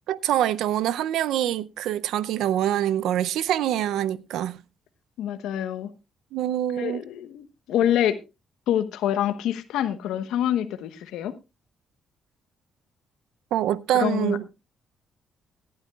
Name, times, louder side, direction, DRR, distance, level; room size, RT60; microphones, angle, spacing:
voice 1, 0.1-4.6 6.3-7.0 13.5-14.5, right 11 dB, 85° right, 0.5 m, -25 dB
voice 2, 5.2-5.9 6.8-8.2 8.7-11.3 13.9-14.4, left 10 dB, 85° left, 1.1 m, -26 dB
17.5 x 11.5 x 2.4 m
cardioid pair, 90°, 0 cm